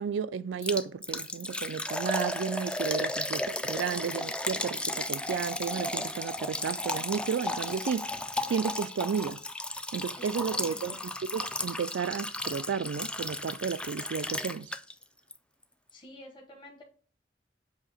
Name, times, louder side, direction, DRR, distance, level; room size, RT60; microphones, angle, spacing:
voice 1, 0.0-8.1 8.5-9.4 9.9-11.0 11.3-14.7, right 6 dB, 90° right, 0.4 m, -33 dB
Liquid, 0.6-15.0 15.3-15.4 15.9-16.0, left 2 dB, 5° left, 0.3 m, -34 dB
voice 2, 10.2-11.0 15.9-16.8, left 1 dB, 25° left, 1.0 m, -48 dB
7.5 x 2.8 x 4.8 m
head